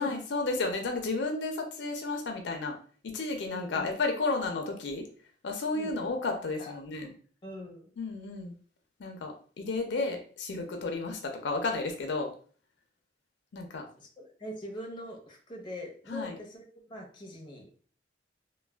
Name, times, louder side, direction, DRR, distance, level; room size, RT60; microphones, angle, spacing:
voice 1, 0.0-2.8 3.0-5.0 5.4-7.1 8.0-8.6 9.0-12.3 13.5-13.9 16.1-16.4, left 3 dB, 70° left, 4 dB, 0.5 m, -32 dB
voice 2, 3.5-3.9 5.7-5.9 6.3-6.7 7.4-7.9 14.0-17.7, left 1 dB, 25° left, 0 dB, 0.6 m, -42 dB
3.1 x 2.1 x 2.2 m, 0.43 s
head